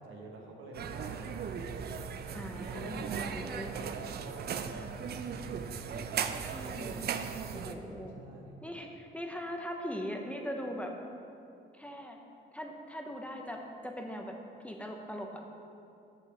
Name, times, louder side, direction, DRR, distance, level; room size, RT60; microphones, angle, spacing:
voice 1, 0.0-2.1 2.7-3.3 3.6-6.4 7.9-8.6, right 2 dB, 85° right, 0 dB, 1.3 m, -47 dB
sound 1, 0.7-7.7, right 7 dB, 55° right, 0.5 m, -37 dB
voice 2, 2.3-3.1 3.3-3.7 6.5-7.0 7.5-8.1 8.6-10.9 11.7-12.2 12.5-14.3 14.6-15.4, equal, 5° left, 2 dB, 0.7 m, -40 dB
6.6 x 6.1 x 4.9 m, 2.6 s
cardioid pair, 90°, 20 cm